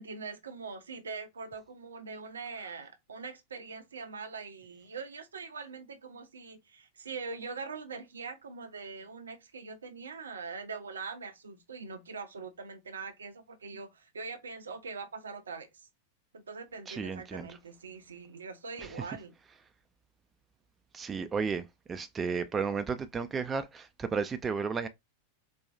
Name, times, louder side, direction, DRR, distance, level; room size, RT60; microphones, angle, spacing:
voice 1, 0.0-15.9 16.3-19.3, right 4 dB, 70° right, 0.6 m, -42 dB
voice 2, 16.9-17.5 20.9-21.6 21.9-24.9, right 5 dB, 20° right, 0.3 m, -33 dB
4.2 x 2.2 x 2.4 m
figure-of-eight pair, 90°, 0 cm